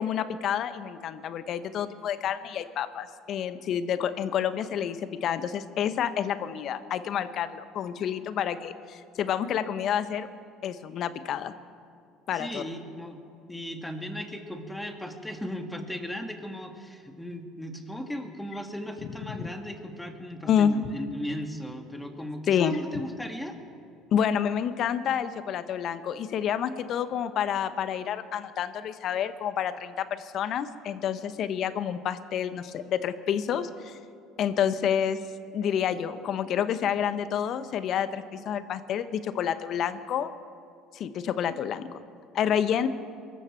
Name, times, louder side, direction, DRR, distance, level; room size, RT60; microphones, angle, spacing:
voice 1, 0.0-10.3 10.6-11.5 12.3-12.6 19.4-19.5 20.5-20.7 22.5-22.8 24.1-34.0 34.4-35.2 35.5-40.3 40.9-42.0 42.3-42.9, left 9 dB, 55° left, 12 dB, 0.9 m, -29 dB
voice 2, 12.3-13.2 13.5-23.6, equal, 10° left, 5 dB, 2.0 m, -37 dB
23.5 x 14.0 x 4.5 m, 2.4 s
supercardioid pair, 75°, 0 cm